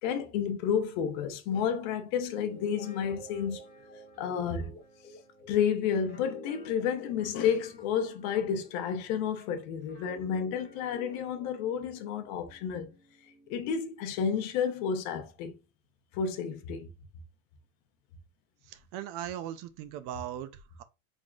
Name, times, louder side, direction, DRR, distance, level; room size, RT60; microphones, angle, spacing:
voice 1, 0.0-3.6 4.2-4.8 5.5-13.0 13.5-15.6 16.1-16.9, left 7 dB, 65° left, 0.9 m, -31 dB
Guitar, 2.2-9.4 9.9-13.6, left 3 dB, 25° left, 1.2 m, -49 dB
voice 2, 18.7-20.5 20.8-20.9, right 11 dB, 50° right, 0.6 m, -38 dB
3.7 x 3.6 x 2.4 m
supercardioid pair, 135°, 42 cm